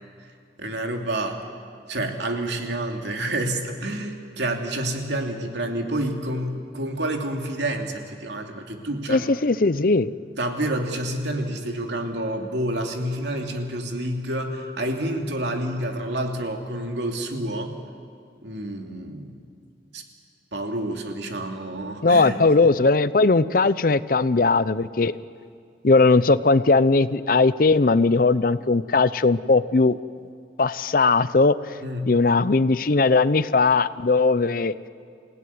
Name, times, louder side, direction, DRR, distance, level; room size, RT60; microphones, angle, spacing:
voice 1, 0.6-1.4 1.9-9.2 10.4-17.8 18.4-19.3 19.9-20.0 20.5-22.7 31.8-32.1, right 1 dB, 80° right, 3 dB, 2.7 m, -28 dB
voice 2, 9.1-10.1 22.0-25.1 25.8-30.0 30.6-31.6 32.1-34.7, left 3 dB, 50° left, 16 dB, 0.6 m, -19 dB
27.5 x 16.5 x 9.6 m, 2.2 s
head